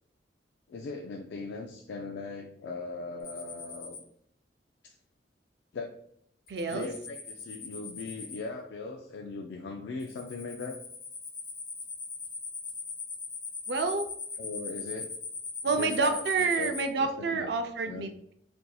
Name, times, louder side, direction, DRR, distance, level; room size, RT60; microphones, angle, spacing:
voice 1, 0.7-4.0 4.8-4.9 5.7-6.0 6.7-10.8 14.4-15.1 15.7-16.2 16.6-17.5 17.8-18.1, left 3 dB, 80° left, 2 dB, 0.3 m, -39 dB
sound 1, 3.2-4.0 6.5-8.4 10.0-16.8, left 5 dB, 65° left, 1.2 m, -40 dB
voice 2, 6.5-6.9 13.7-14.1 15.6-18.3, right 4 dB, 70° right, 6 dB, 0.4 m, -29 dB
4.1 x 2.6 x 2.3 m, 0.68 s
head